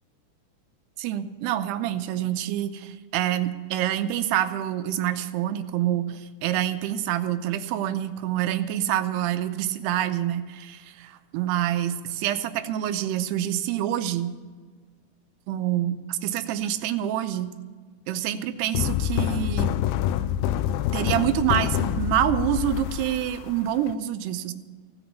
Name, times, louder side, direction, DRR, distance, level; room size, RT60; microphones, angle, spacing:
voice 1, 1.0-14.4 15.5-17.5 18.1-19.7 20.9-24.5, right 11 dB, 85° right, 10 dB, 2.8 m, -27 dB
sound 1, 18.7-23.9, left 11 dB, 80° left, 2.3 m, -26 dB
16.0 x 6.1 x 10.0 m, 1.5 s
omnidirectional pair, 4.7 m